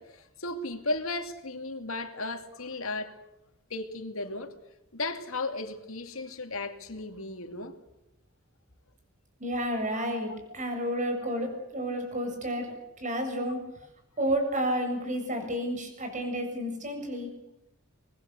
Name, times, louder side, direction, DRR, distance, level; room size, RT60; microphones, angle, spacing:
voice 1, 0.0-3.1 3.7-4.5 4.9-7.7 9.8-10.1 12.2-12.3, left 2 dB, 85° left, 2.6 m, -35 dB
voice 2, 9.4-13.6 14.2-17.3, equal, 35° right, 7.3 m, -31 dB
24.5 x 20.5 x 8.1 m
head